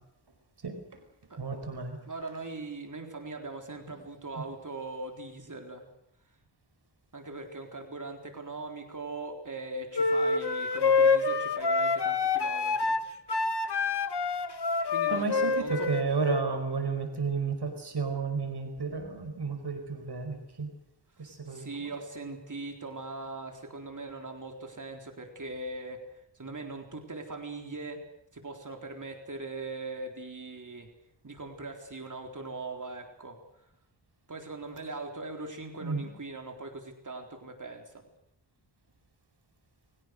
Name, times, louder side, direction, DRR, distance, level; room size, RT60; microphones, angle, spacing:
voice 1, 0.6-1.0 1.4-2.0 4.4-4.5 15.1-20.7 21.2-21.9 35.8-36.1, right 4 dB, 60° right, 6 dB, 5.0 m, -32 dB
voice 2, 2.1-5.9 7.1-13.0 14.9-15.9 21.5-26.0 26.3-28.0 28.3-30.9 31.2-33.4 34.3-38.1, right 3 dB, 45° right, 3 dB, 4.0 m, -40 dB
sound 1, 9.9-16.5, left 4 dB, 65° left, 1.8 m, -27 dB
29.5 x 23.5 x 6.6 m, 0.81 s
wide cardioid pair, 110°, 44 cm